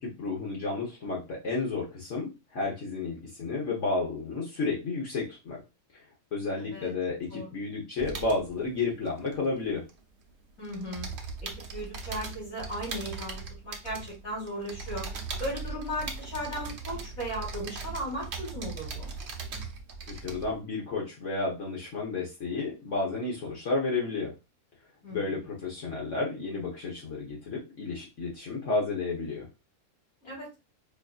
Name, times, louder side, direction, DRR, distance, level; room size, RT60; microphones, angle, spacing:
voice 1, 0.0-5.6 5.9-6.0 6.3-9.9 20.1-24.3 25.1-29.5, left 3 dB, 60° left, -3 dB, 1.4 m, -32 dB
voice 2, 6.6-6.9 7.3-7.5 10.6-11.1 11.4-15.1 15.4-19.1 25.0-25.2 30.2-30.5, equal, 85° left, -7 dB, 2.7 m, -36 dB
sound 1, 8.0-10.2 10.5-20.6, right 4 dB, 55° right, 0.9 m, -39 dB
4.7 x 2.7 x 2.4 m, 0.26 s
omnidirectional pair, 1.5 m